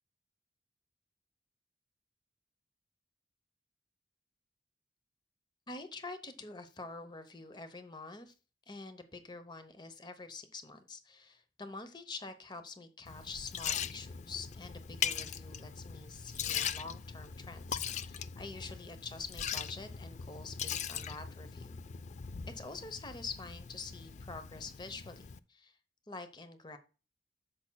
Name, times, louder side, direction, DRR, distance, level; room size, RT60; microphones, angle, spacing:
voice 1, 5.7-8.3 8.7-21.7 22.6-25.8 26.1-26.8, left 3 dB, 25° left, 9 dB, 0.9 m, -46 dB
Liquid, 13.1-25.4, left 8 dB, 40° left, 0.4 m, -40 dB
10.5 x 7.3 x 2.3 m, 0.32 s
head